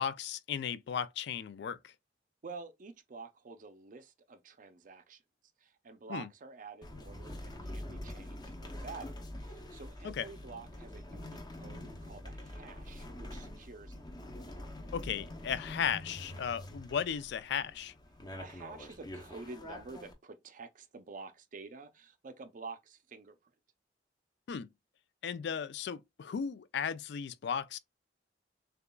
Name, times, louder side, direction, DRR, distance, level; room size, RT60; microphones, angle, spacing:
voice 1, 0.0-1.9 6.1-6.3 10.0-10.3 14.9-17.9 24.5-24.7 25.2-27.8, left 7 dB, 65° left, 0.3 m, -35 dB
voice 2, 2.4-5.2 5.6-14.0 18.4-23.4, right 4 dB, 45° right, 0.5 m, -49 dB
sound 1, 6.8-20.1, left 1 dB, 25° left, 0.6 m, -45 dB
6.7 x 2.4 x 2.2 m
head